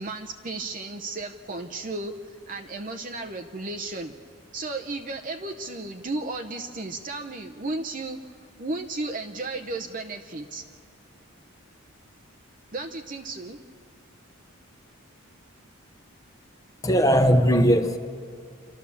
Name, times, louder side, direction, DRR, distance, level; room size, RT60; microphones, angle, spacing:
voice 1, 0.0-4.1 4.5-8.2 8.6-10.6 12.7-13.6, right 2 dB, 40° right, 4 dB, 0.7 m, -34 dB
voice 2, 16.8-18.0, equal, 15° left, 7 dB, 0.8 m, -19 dB
29.0 x 12.5 x 7.1 m, 2.2 s
head